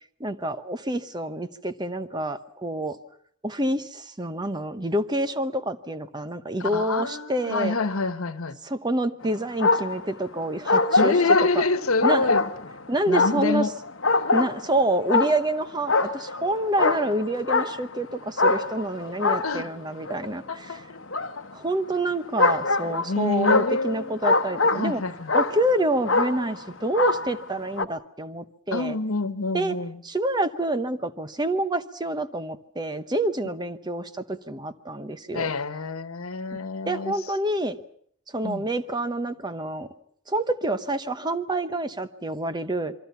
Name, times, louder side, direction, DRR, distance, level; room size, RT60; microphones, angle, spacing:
voice 1, 0.2-3.0 3.4-7.8 8.6-11.2 11.5-11.6 12.0-12.4 12.9-13.7 14.3-20.8 21.5-25.0 25.3-29.0 29.5-29.8 30.0-35.5 36.5-36.6 36.9-37.8 38.3-39.9 40.3-42.9, right 1 dB, 20° right, 0.9 m, -27 dB
voice 2, 6.6-8.6 10.9-12.5 13.1-13.7 19.4-19.7 20.5-21.0 23.0-24.2 24.7-25.3 28.7-30.0 35.3-37.1 38.4-38.7, left 3 dB, 85° left, 1.3 m, -27 dB
sound 1, 9.2-10.1 10.7-12.8 13.1-14.7 15.1-15.6 15.9-18.0 18.4-20.2 21.1-21.3 22.4-25.0 25.3-25.8 26.1-26.6 26.9-27.5 27.8-27.9, left 3 dB, 60° left, 1.2 m, -23 dB
27.0 x 23.5 x 5.8 m
head